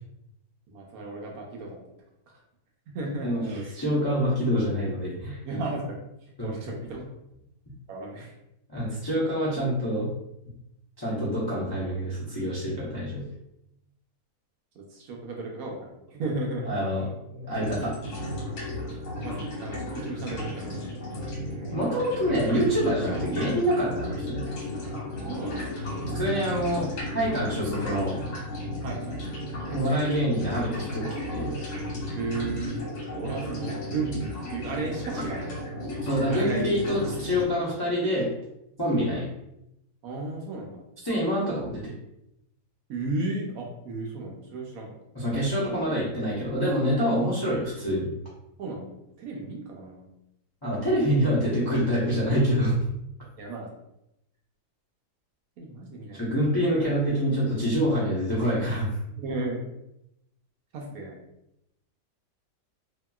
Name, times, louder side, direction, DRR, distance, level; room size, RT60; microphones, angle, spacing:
voice 1, 0.7-1.8 2.3-2.4 2.9-3.7 5.4-6.0 6.4-7.1 7.9-8.3 14.7-16.6 19.2-21.0 21.3-21.7 24.9-25.0 25.3-25.7 26.1-26.5 28.8-29.2 32.1-32.8 33.1-35.6 36.3-36.6 40.0-40.9 42.9-44.9 45.4-45.7 48.6-50.1 51.0-51.1 53.4-53.7 55.6-56.2 59.1-59.6 60.7-61.2, right 2 dB, 70° right, -1 dB, 1.0 m, -34 dB
voice 2, 3.2-5.4 6.4-6.6 8.7-10.1 11.0-13.2 16.6-17.9 21.7-24.4 26.2-26.9 27.1-28.2 29.7-31.6 35.1-35.2 36.0-38.3 38.8-39.3 41.0-41.9 45.1-48.1 50.6-52.8 56.1-58.9, equal, 35° left, -8 dB, 0.4 m, -26 dB
sound 1, 17.5-37.5, left 1 dB, 75° left, 1.6 m, -34 dB
2.8 x 2.7 x 2.3 m, 0.84 s
omnidirectional pair, 1.7 m